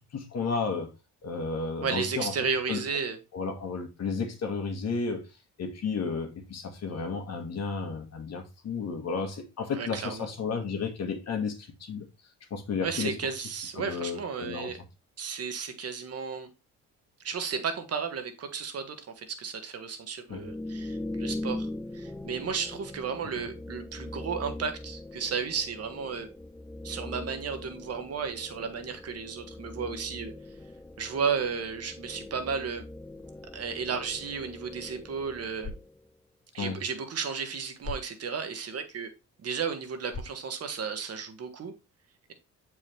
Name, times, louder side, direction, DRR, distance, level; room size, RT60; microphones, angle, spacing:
voice 1, 0.1-0.9 1.2-2.3 2.7-2.8 3.3-5.3 5.6-12.1 12.5-13.1 13.8-14.7 20.3-20.4 23.4-23.5 36.6-36.8, left 5 dB, 55° left, 1.9 m, -32 dB
voice 2, 1.8-3.2 9.7-10.3 12.8-14.8 15.2-16.5 17.2-21.7 21.9-26.3 26.8-30.3 31.0-32.8 33.5-35.7 36.5-39.1 39.4-41.7, right 6 dB, 55° right, 1.6 m, -33 dB
sound 1, 20.3-36.1, left 1 dB, 5° left, 0.5 m, -41 dB
sound 2, 35.4-41.5, left 3 dB, 35° left, 2.4 m, -46 dB
7.2 x 4.9 x 3.4 m
cardioid pair, 90°, 30 cm